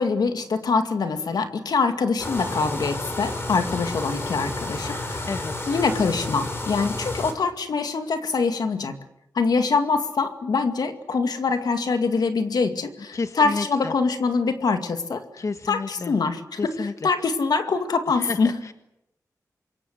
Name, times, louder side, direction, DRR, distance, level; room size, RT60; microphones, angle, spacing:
voice 1, 0.0-5.3 5.7-9.0 9.3-18.6, left 4 dB, 85° left, 7 dB, 2.3 m, -24 dB
sound 1, 2.2-7.3, left 2 dB, 35° left, 5.2 m, -31 dB
voice 2, 5.3-5.7 13.1-13.9 15.4-16.1 16.6-16.9 18.2-18.7, left 4 dB, 50° left, 8 dB, 1.4 m, -31 dB
27.0 x 23.0 x 8.1 m, 0.84 s
wide cardioid pair, 110°, 7 cm